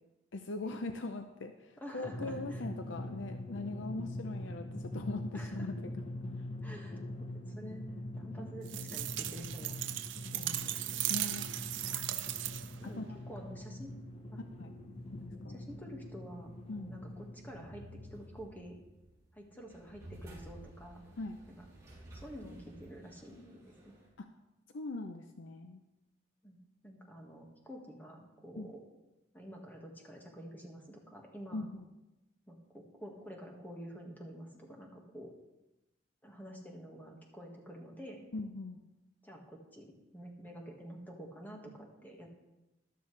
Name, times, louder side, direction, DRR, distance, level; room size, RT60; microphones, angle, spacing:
voice 1, 0.3-6.0 11.1-11.5 12.8-13.2 14.6-14.7 15.1-15.6 16.7-16.9 21.2-21.4 24.2-24.3 24.7-25.8 28.6-28.7 31.5-31.8 38.3-38.8, left 2 dB, 80° left, 7 dB, 0.7 m, -41 dB
voice 2, 1.8-2.6 5.3-5.7 6.6-7.8 8.2-9.8 10.3-11.1 11.9-12.0 12.8-13.9 14.3-14.4 15.5-18.8 19.3-21.0 21.6-21.7 22.1-23.9 26.4-26.6 26.8-28.8 29.3-31.7 32.5-35.3 36.2-38.2 39.2-42.3, equal, 10° left, 0 dB, 1.7 m, -49 dB
Drum, 2.0-18.2, left 1 dB, 30° left, 0.8 m, -43 dB
sound 1, 8.7-12.9, right 14 dB, 75° right, 0.6 m, -37 dB
sound 2, 11.8-24.1, right 1 dB, 15° right, 4.6 m, -57 dB
13.5 x 12.0 x 3.3 m, 0.99 s
head